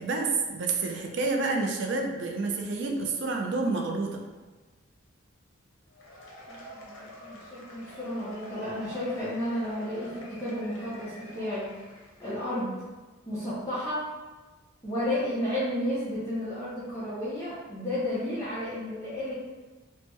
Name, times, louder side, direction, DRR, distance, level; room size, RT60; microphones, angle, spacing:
voice 1, 0.0-4.2, right 3 dB, 60° right, 2 dB, 0.4 m, -29 dB
Cheering / Applause / Crowd, 5.9-12.7, equal, 80° left, 0.7 m, -47 dB
voice 2, 6.5-11.7 12.2-12.7 13.3-14.0 14.8-19.4, left 1 dB, 15° left, -12 dB, 0.6 m, -32 dB
3.3 x 2.1 x 3.1 m, 1.2 s
head